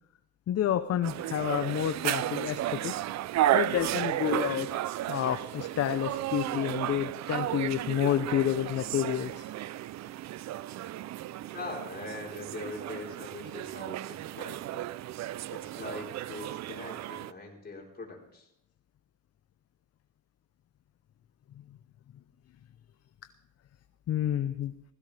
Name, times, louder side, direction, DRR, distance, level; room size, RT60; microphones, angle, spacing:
voice 1, 0.5-3.0 3.5-4.7 5.1-9.5 24.1-24.7, left 10 dB, 55° left, 10 dB, 0.7 m, -29 dB
sound 1, 1.0-17.3, right 13 dB, 65° right, 0.5 m, -33 dB
voice 2, 11.5-14.9 15.5-18.5, left 3 dB, 30° left, -1 dB, 3.9 m, -42 dB
16.0 x 16.0 x 3.4 m, 0.76 s
cardioid pair, 90°, 30 cm